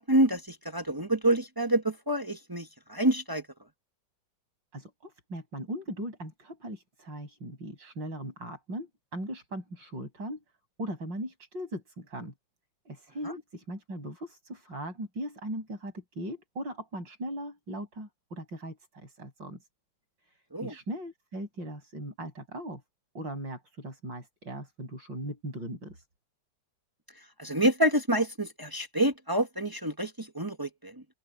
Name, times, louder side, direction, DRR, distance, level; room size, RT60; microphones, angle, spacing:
voice 1, 0.0-3.4 13.2-13.3 20.5-20.7 27.4-31.0, right 1 dB, 20° right, 0.6 m, -27 dB
voice 2, 4.7-10.4 10.8-12.3 12.9-19.6 20.3-22.8 23.2-26.1, right 1 dB, 80° right, 8.7 m, -39 dB
open air
omnidirectional pair, 2.0 m